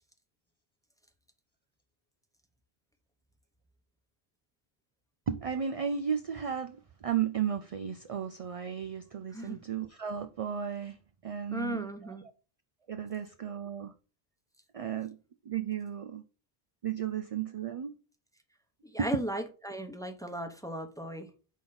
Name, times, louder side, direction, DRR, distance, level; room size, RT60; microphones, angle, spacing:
voice 1, 5.3-11.0 11.2-12.2 12.9-13.9 14.7-15.2 15.4-16.2 16.8-18.0 19.0-19.1, right 8 dB, 50° right, 0.4 m, -34 dB
voice 2, 11.5-12.2 18.8-21.3, equal, 5° left, 0.8 m, -36 dB
5.2 x 4.0 x 5.8 m
omnidirectional pair, 1.1 m